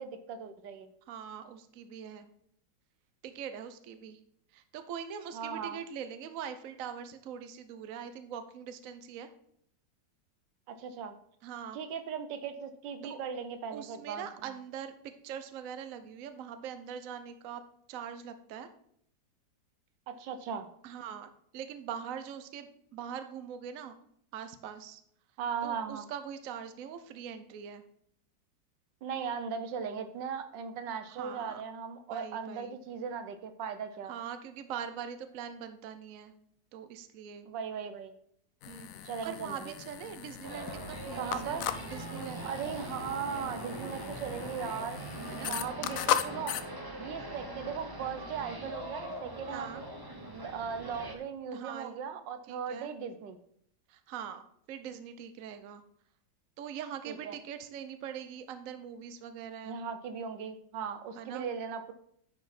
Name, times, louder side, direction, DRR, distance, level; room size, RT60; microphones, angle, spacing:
voice 1, 0.0-0.9 5.3-5.8 10.7-11.1 11.7-14.5 20.1-20.7 25.4-26.1 29.0-34.1 37.5-38.1 39.0-39.7 41.2-41.7 42.4-45.0 45.4-46.6 47.0-49.8 50.3-53.4 57.1-57.3 59.6-61.9, right 6 dB, 75° right, 10 dB, 1.4 m, -38 dB
voice 2, 1.1-2.3 3.2-4.2 4.5-9.3 11.4-11.8 13.0-13.2 13.7-17.6 17.9-18.7 20.8-24.0 24.3-25.0 25.6-27.8 31.1-31.6 32.1-32.8 34.1-36.3 36.7-37.5 38.7-38.9 39.2-42.5 45.3-45.5 49.5-49.8 51.5-52.0 52.5-52.9 53.9-54.4 54.7-55.8 56.6-59.8 61.2-61.5, right 8 dB, 60° right, 9 dB, 0.9 m, -42 dB
sound 1, 38.6-46.6, left 10 dB, 75° left, 0.7 m, -37 dB
sound 2, 40.4-51.2, right 1 dB, 25° right, 0.5 m, -42 dB
10.0 x 5.1 x 4.2 m, 0.69 s
omnidirectional pair, 2.0 m